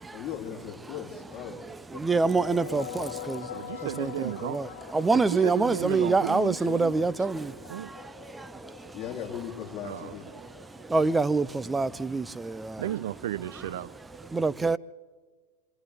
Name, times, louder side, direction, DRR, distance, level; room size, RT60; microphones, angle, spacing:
voice 1, 0.1-1.7 3.1-3.2 8.9-10.3, left 9 dB, 30° left, 3.4 m, -38 dB
sound 1, 1.9-11.3, left 11 dB, 70° left, 1.7 m, -44 dB
voice 2, 2.0-3.4 4.0-4.7 4.9-7.4 10.9-12.2 14.3-14.8, right 3 dB, 10° right, 0.6 m, -25 dB
voice 3, 3.5-4.6 5.1-6.9 7.7-7.9 9.8-10.2 12.8-14.3, right 12 dB, 70° right, 0.8 m, -34 dB
27.5 x 26.5 x 3.6 m
hypercardioid pair, 110°, 0 cm